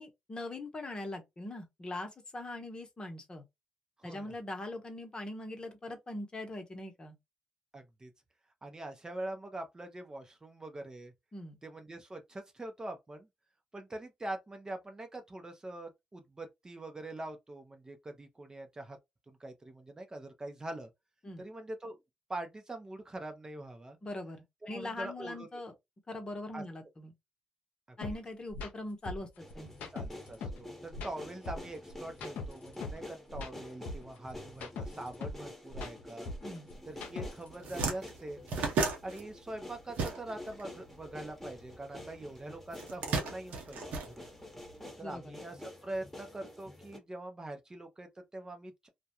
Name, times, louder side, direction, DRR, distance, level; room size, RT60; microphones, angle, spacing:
voice 1, 0.0-3.4 4.0-7.2 11.3-11.6 21.2-21.4 24.0-25.7 26.1-27.1 28.0-29.9 36.4-36.7 45.0-45.4, left 2 dB, 35° left, 0.9 m, -42 dB
voice 2, 4.0-4.3 7.7-8.1 8.6-11.1 11.6-13.3 13.7-19.0 19.3-20.9 21.4-22.0 22.3-24.0 24.7-25.6 26.5-26.6 27.9-28.0 29.9-36.3 36.9-38.4 39.0-44.3 45.0-45.6 45.8-48.9, right 1 dB, 25° right, 0.6 m, -43 dB
sound 1, 28.0-28.1 28.5-28.7 29.0-30.6 30.9-33.0 33.3-35.4 35.7-37.5, left 3 dB, 75° left, 0.6 m, -41 dB
sound 2, 29.4-47.0, left 1 dB, 5° left, 1.1 m, -49 dB
sound 3, 37.0-37.2 37.4-40.6 40.9-42.1 42.7-44.7, right 4 dB, 75° right, 0.8 m, -34 dB
2.3 x 2.2 x 2.8 m
supercardioid pair, 55°, 3 cm